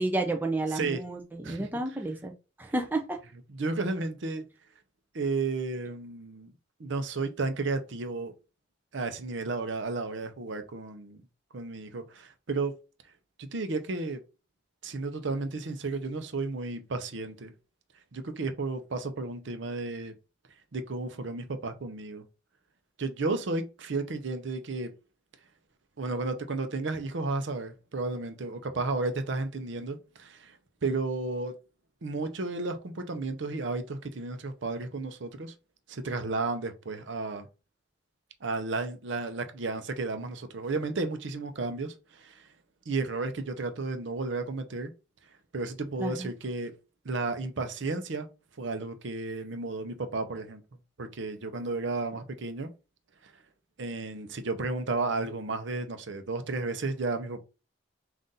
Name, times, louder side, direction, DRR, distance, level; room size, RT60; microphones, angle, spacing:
voice 1, 0.0-2.3 2.6-3.2 46.0-46.3, right 2 dB, 10° right, 0.4 m, -31 dB
voice 2, 3.6-4.5 5.1-6.5 6.8-8.3 8.9-11.2 11.5-12.7 13.4-14.2 14.8-17.5 18.1-20.1 20.7-22.2 23.0-24.9 26.0-31.5 32.0-35.5 35.9-37.5 38.4-42.4 42.9-44.9 45.5-46.7 47.0-48.3 48.6-50.6 51.0-52.7 53.2-53.3 53.8-57.4, right 3 dB, 65° right, 0.6 m, -33 dB
3.9 x 2.5 x 3.8 m
head